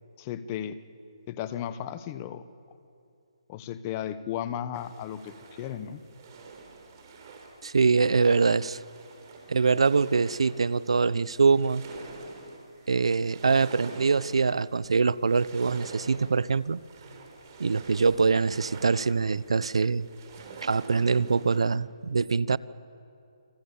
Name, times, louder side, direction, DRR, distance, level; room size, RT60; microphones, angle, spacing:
voice 1, 0.2-0.8 1.3-2.4 3.5-6.0, left 10 dB, 25° left, 13 dB, 1.1 m, -35 dB
sound 1, 4.7-21.7, right 4 dB, 35° right, 6.0 m, -47 dB
voice 2, 7.6-8.8 9.5-11.8 12.9-16.8 17.6-20.1 20.6-22.6, right 4 dB, 75° right, 19 dB, 0.7 m, -24 dB
29.0 x 26.0 x 7.1 m, 2.6 s
hypercardioid pair, 155°, 3 cm